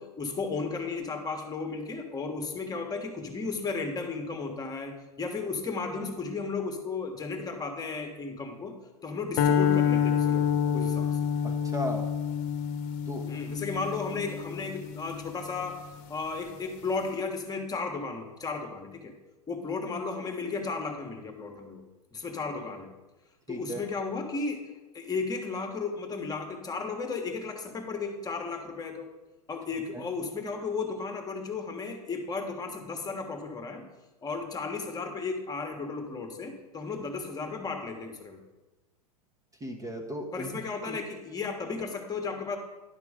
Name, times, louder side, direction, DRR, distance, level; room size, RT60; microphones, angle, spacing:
voice 1, 0.0-8.7 9.0-11.3 13.3-15.8 16.1-19.1 19.5-21.8 22.1-22.9 23.5-24.6 24.9-29.1 29.5-33.9 34.2-38.4 40.3-42.6, left 4 dB, 20° left, 4 dB, 1.4 m, -34 dB
sound 1, 9.4-15.7, left 8 dB, 50° left, 0.9 m, -28 dB
voice 2, 11.4-12.1 13.1-13.3 23.5-23.8 29.9-30.0 39.6-40.5 40.9-41.0, equal, 15° right, 2 dB, 1.2 m, -36 dB
10.5 x 6.0 x 5.0 m, 1.1 s
hypercardioid pair, 100°, 20 cm